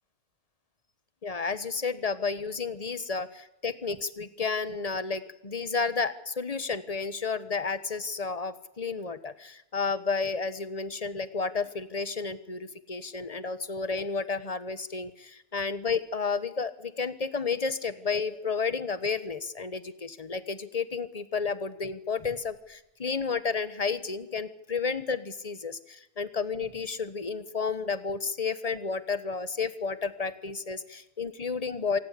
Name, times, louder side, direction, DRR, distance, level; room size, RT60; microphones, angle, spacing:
voice 1, 1.2-32.0, left 5 dB, 30° left, 14 dB, 1.1 m, -31 dB
26.5 x 19.0 x 8.4 m, 0.88 s
omnidirectional pair, 1.5 m